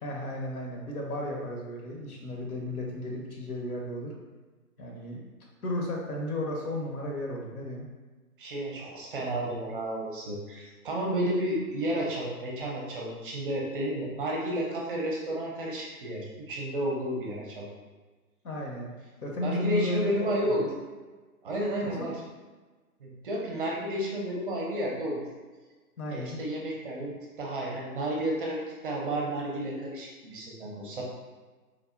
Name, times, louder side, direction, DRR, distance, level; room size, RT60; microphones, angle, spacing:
voice 1, 0.0-4.1 4.8-5.3 5.6-7.9 18.4-18.9 19.2-20.7 22.0-22.1 26.0-26.4, left 1 dB, 70° left, -1 dB, 0.9 m, -34 dB
voice 2, 8.4-17.7 19.4-20.7 21.4-22.2 23.0-25.2 26.1-31.0, right 1 dB, 35° right, -2 dB, 0.5 m, -32 dB
3.4 x 2.0 x 2.4 m, 1.3 s
hypercardioid pair, 140°, 46 cm